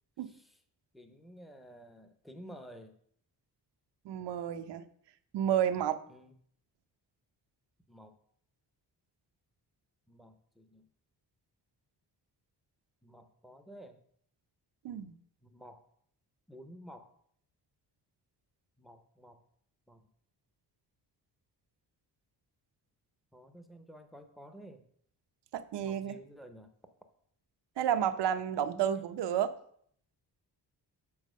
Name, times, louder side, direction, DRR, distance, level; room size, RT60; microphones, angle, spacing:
voice 1, 0.2-0.6 0.9-3.0 6.1-6.3 7.9-8.2 10.1-10.9 13.0-14.0 15.4-15.8 16.5-17.1 18.8-19.4 19.9-20.0 23.3-24.9 25.8-26.7 28.7-29.1, equal, ahead, 7 dB, 0.6 m, -51 dB
voice 2, 4.0-4.8 5.3-6.0 14.8-15.1 25.5-26.2 27.8-29.5, right 9 dB, 80° right, 11 dB, 0.7 m, -31 dB
7.0 x 4.5 x 6.4 m, 0.64 s
wide cardioid pair, 140°, 41 cm